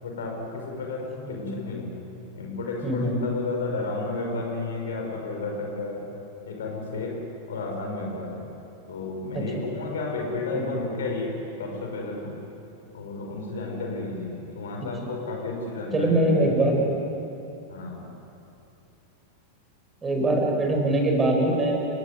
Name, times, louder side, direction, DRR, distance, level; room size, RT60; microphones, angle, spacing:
voice 1, 0.0-2.0 2.3-6.1 6.5-8.5 8.9-12.3 12.9-16.7 17.7-18.1, left 3 dB, 65° left, 1 dB, 5.6 m, -32 dB
voice 2, 2.8-3.2 10.5-10.8 15.9-16.8 20.0-22.0, right 1 dB, 15° right, 1 dB, 5.3 m, -23 dB
29.5 x 17.5 x 9.7 m, 2.8 s
figure-of-eight pair, 90°, 0 cm